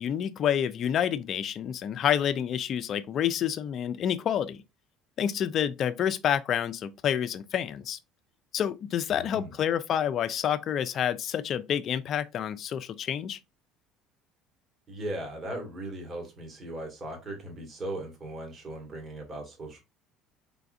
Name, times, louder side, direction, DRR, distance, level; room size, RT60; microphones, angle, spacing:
voice 1, 0.0-4.6 5.2-8.0 8.5-13.4, left 9 dB, 50° left, 0.4 m, -28 dB
voice 2, 9.1-9.5 14.9-19.8, right 1 dB, 35° right, 1.7 m, -38 dB
3.9 x 3.4 x 2.4 m
supercardioid pair, 105°, 0 cm